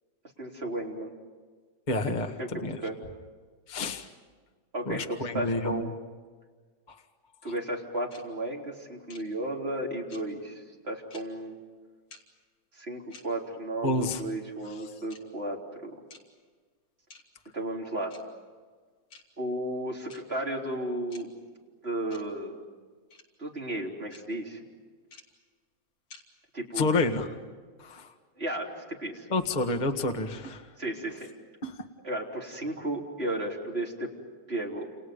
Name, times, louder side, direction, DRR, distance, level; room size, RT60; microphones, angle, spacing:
voice 1, 0.4-1.1 2.2-2.9 4.7-6.0 7.4-11.6 12.7-15.9 17.5-18.1 19.4-21.3 21.8-22.6 23.4-24.6 26.5-27.1 28.4-29.3 30.8-31.3 32.0-34.1 34.5-34.9, right 1 dB, 20° right, -2 dB, 3.9 m, -34 dB
voice 2, 1.9-2.8 3.7-4.1 4.8-5.9 6.9-7.0 13.8-14.2 26.7-27.3 27.8-28.1 29.3-30.6 31.6-31.8, left 2 dB, 20° left, 4 dB, 1.2 m, -29 dB
sound 1, 8.1-8.2 9.1-9.2 10.1-10.2 11.1-11.2 12.1-12.2 13.1-13.2 14.1-14.2 15.1-15.2 16.1-16.2 17.1-17.2 18.1-18.2 19.1-19.2 20.1-20.2 21.1-21.2 22.1-22.2 23.1-23.2 24.1-24.2 25.1-25.2 26.1-26.2, left 4 dB, 50° left, 3.8 m, -49 dB
30.0 x 29.5 x 5.4 m, 1.5 s
omnidirectional pair, 3.5 m